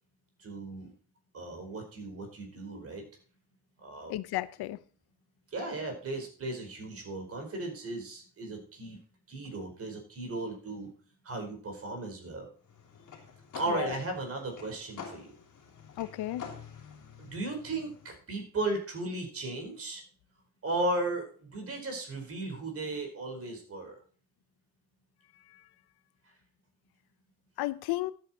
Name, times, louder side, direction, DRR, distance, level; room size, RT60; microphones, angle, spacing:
voice 1, 0.4-0.9 1.3-3.0 3.8-4.1 5.5-9.0 9.3-10.9 11.2-12.5 13.5-15.3 17.2-20.0 20.6-24.0, right 2 dB, 35° right, 4.7 m, -36 dB
voice 2, 4.1-4.8 13.7-13.9 16.0-16.5 27.6-28.1, left 16 dB, 75° left, 0.7 m, -33 dB
sound 1, 12.6-18.1, left 6 dB, 50° left, 3.2 m, -48 dB
12.5 x 8.5 x 4.4 m
cardioid pair, 145°, 39 cm